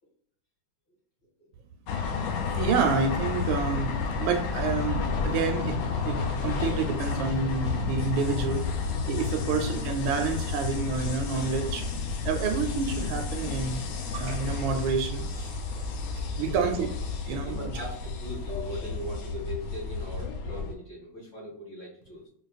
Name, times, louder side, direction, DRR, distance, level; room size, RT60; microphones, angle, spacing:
sound 1, 1.9-20.7, left 5 dB, 70° left, 1.1 m, -31 dB
voice 1, 2.6-5.8 6.0-11.9 12.2-15.6 16.4-16.9 17.3-17.8, right 5 dB, 80° right, 5 dB, 1.3 m, -29 dB
voice 2, 16.5-16.9 17.4-22.3, equal, 50° left, -6 dB, 2.0 m, -40 dB
4.5 x 2.5 x 2.3 m, 0.68 s
omnidirectional pair, 2.3 m